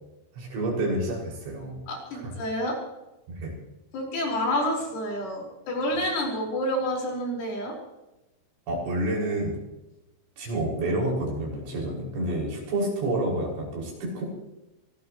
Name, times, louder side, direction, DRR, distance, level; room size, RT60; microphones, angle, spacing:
voice 1, 0.4-1.8 2.1-2.3 3.3-3.5 8.7-9.6 10.4-14.2, right 1 dB, 75° right, -3 dB, 8.7 m, -29 dB
voice 2, 1.9-2.8 3.9-7.8, left 1 dB, 80° left, -1 dB, 7.5 m, -28 dB
24.0 x 18.5 x 3.2 m, 0.95 s
omnidirectional pair, 5.5 m